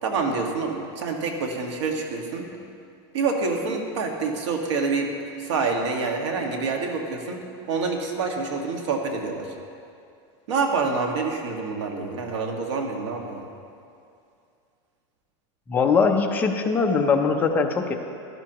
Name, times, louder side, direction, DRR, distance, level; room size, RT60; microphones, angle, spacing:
voice 1, 0.0-2.5 3.1-5.1 5.4-9.5 10.5-13.5, right 4 dB, 90° right, 2 dB, 1.7 m, -27 dB
voice 2, 15.7-17.9, left 5 dB, 10° left, 2 dB, 0.6 m, -21 dB
15.5 x 12.0 x 3.0 m, 2.4 s
supercardioid pair, 170°, 14 cm